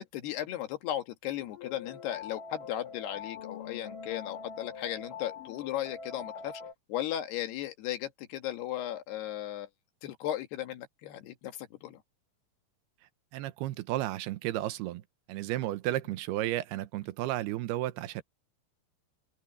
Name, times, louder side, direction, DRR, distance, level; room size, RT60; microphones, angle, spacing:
voice 1, 0.0-6.6 6.9-9.7 10.0-12.0, left 12 dB, 75° left, 3.6 m, -36 dB
sound 1, 1.4-6.7, left 6 dB, 60° left, 3.1 m, -43 dB
voice 2, 13.3-15.0 15.3-18.2, right 15 dB, 80° right, 2.8 m, -33 dB
open air
omnidirectional pair, 4.8 m